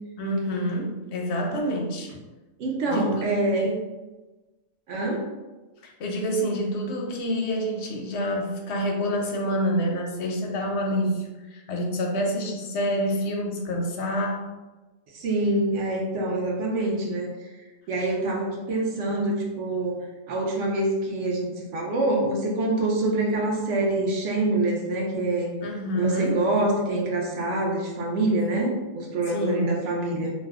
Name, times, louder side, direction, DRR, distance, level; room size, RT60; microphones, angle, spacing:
voice 1, 0.2-2.1 2.8-3.8 5.8-14.5 25.6-26.4 29.3-29.7, equal, 65° left, 0 dB, 0.7 m, -27 dB
voice 2, 2.6-3.7 4.9-5.2 15.1-17.5 17.9-25.5 26.0-30.3, right 2 dB, 70° right, -1 dB, 0.9 m, -26 dB
2.6 x 2.2 x 3.4 m, 1.2 s
omnidirectional pair, 1.4 m